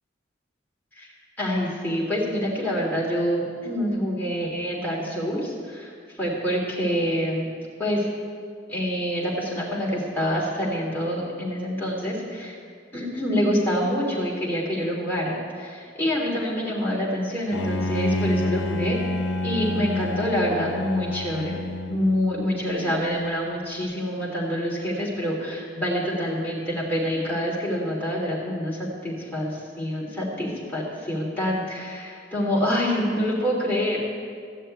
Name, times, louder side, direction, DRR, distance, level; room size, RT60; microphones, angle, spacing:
voice 1, 1.4-7.5 7.8-8.1 8.7-12.5 12.9-19.0 19.4-21.6 21.9-34.2, equal, 10° left, -6 dB, 3.4 m, -26 dB
Bowed string instrument, 17.5-22.5, left 1 dB, 75° left, 0.9 m, -28 dB
15.5 x 6.7 x 9.3 m, 2.1 s
head